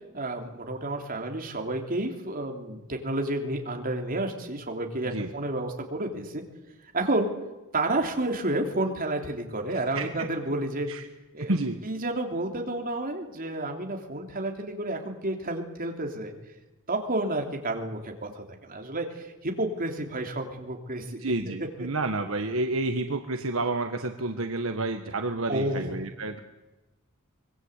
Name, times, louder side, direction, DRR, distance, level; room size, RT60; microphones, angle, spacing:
voice 1, 0.1-6.4 6.9-7.3 7.7-10.9 11.3-11.5 11.8-16.3 16.9-21.2 25.5-25.9, right 2 dB, 40° right, 3 dB, 3.3 m, -30 dB
voice 2, 9.7-10.1 10.9-11.1 11.4-11.8 21.2-26.4, right 2 dB, 65° right, 6 dB, 1.4 m, -30 dB
25.0 x 21.0 x 8.2 m, 1.1 s
head